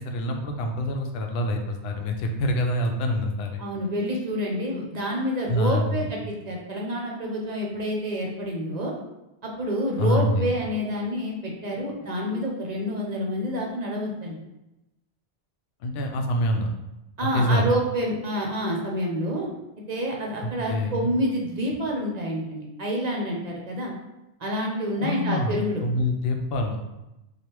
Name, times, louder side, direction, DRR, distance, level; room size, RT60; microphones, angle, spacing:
voice 1, 0.0-3.6 5.5-6.1 10.0-10.5 15.8-16.7 17.3-17.7 20.4-21.1 25.0-26.8, left 1 dB, 70° left, 3 dB, 0.8 m, -26 dB
voice 2, 3.6-8.9 9.4-14.3 17.2-19.5 19.9-23.9 24.4-25.8, equal, 45° right, -1 dB, 0.7 m, -28 dB
3.3 x 2.4 x 4.4 m, 0.95 s
omnidirectional pair, 1.1 m